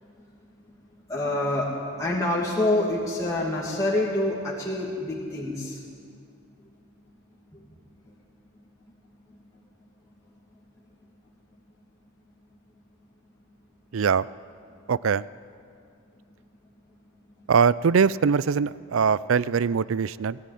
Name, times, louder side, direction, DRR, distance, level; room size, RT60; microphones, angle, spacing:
voice 1, 1.1-1.7 2.0-5.8 7.5-7.7 8.0-8.1 9.3-9.4, left 1 dB, 15° left, -5 dB, 2.5 m, -27 dB
voice 2, 13.9-14.3 14.9-15.2 17.5-20.4, right 6 dB, 70° right, 19 dB, 0.4 m, -22 dB
20.5 x 14.5 x 9.3 m, 2.4 s
head